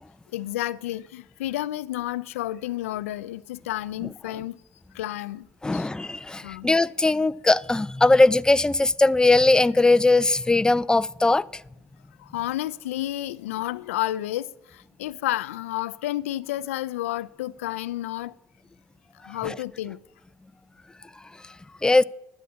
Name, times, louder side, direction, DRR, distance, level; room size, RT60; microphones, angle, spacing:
voice 1, 0.3-4.6 4.9-5.5 5.7-5.9 6.4-6.7 12.2-18.3 19.2-20.0, left 14 dB, 90° left, 0.3 m, -31 dB
voice 2, 5.6-11.5 19.4-19.5 21.8-22.0, left 2 dB, 10° left, 0.4 m, -20 dB
11.5 x 8.2 x 8.4 m
hypercardioid pair, 60°, 7 cm